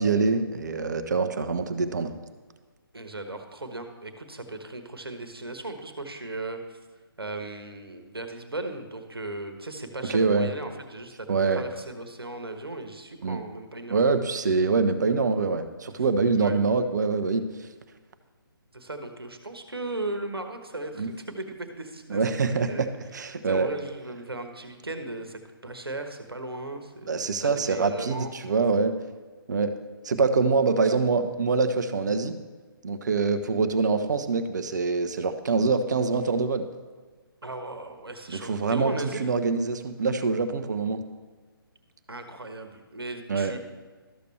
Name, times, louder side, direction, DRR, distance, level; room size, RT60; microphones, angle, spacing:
voice 1, 0.0-2.1 10.1-10.5 11.3-11.6 13.2-13.4 13.9-17.4 21.0-21.1 22.1-23.7 27.1-28.9 29.5-29.7 30.0-32.4 32.8-36.7 38.3-41.0 43.3-43.5, right 4 dB, 50° right, 10 dB, 0.7 m, -25 dB
voice 2, 2.9-6.8 7.2-14.0 16.3-16.6 18.7-22.9 23.4-28.3 37.4-39.2 42.1-43.6, right 2 dB, 75° right, 7 dB, 1.2 m, -37 dB
13.0 x 6.7 x 3.3 m, 1.4 s
figure-of-eight pair, 140°, 13 cm